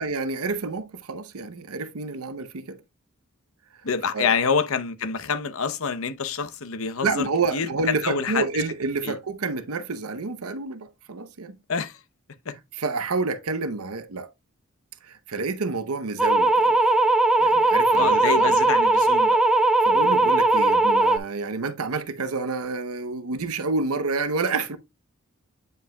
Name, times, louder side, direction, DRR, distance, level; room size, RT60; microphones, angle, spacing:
voice 1, 0.0-2.8 4.1-4.3 7.0-11.6 12.8-14.3 15.0-16.9 17.4-18.6 19.8-24.8, right 3 dB, 85° right, 0.8 m, -29 dB
voice 2, 3.8-8.6 9.0-9.2 11.7-12.0 12.5-12.6 17.9-19.4, left 5 dB, 70° left, 0.8 m, -27 dB
sound 1, 16.2-21.2, right 2 dB, 5° right, 0.5 m, -19 dB
9.1 x 5.4 x 2.3 m
head